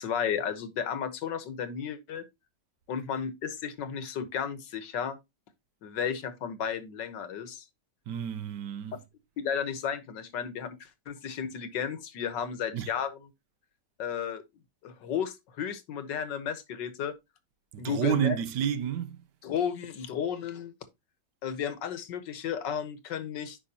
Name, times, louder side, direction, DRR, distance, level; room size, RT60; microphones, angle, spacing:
voice 1, 0.0-2.2 2.9-5.2 5.8-7.6 9.4-13.2 14.0-14.4 14.8-17.1 17.8-18.4 19.4-20.7 21.4-23.6, left 8 dB, 85° left, 1.8 m, -33 dB
voice 2, 8.1-9.0 12.7-12.9 17.7-19.2, right 10 dB, 75° right, 1.4 m, -30 dB
9.7 x 5.6 x 2.7 m
omnidirectional pair, 1.9 m